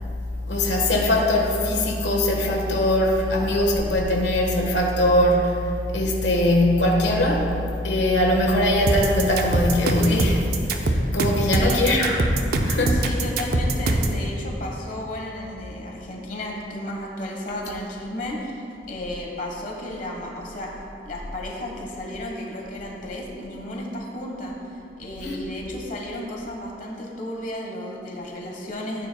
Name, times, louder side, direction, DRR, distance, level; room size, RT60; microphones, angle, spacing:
voice 1, 0.5-5.6 5.9-7.5 7.8-12.2 12.6-13.0 25.2-25.4, left 1 dB, 85° left, 0 dB, 1.4 m, -21 dB
sound 1, 8.9-14.2, right 1 dB, 60° right, 0.7 m, -22 dB
voice 2, 12.9-20.7 21.0-24.5 25.0-29.1, left 1 dB, 50° left, -1 dB, 1.3 m, -33 dB
15.0 x 9.2 x 2.3 m, 2.6 s
head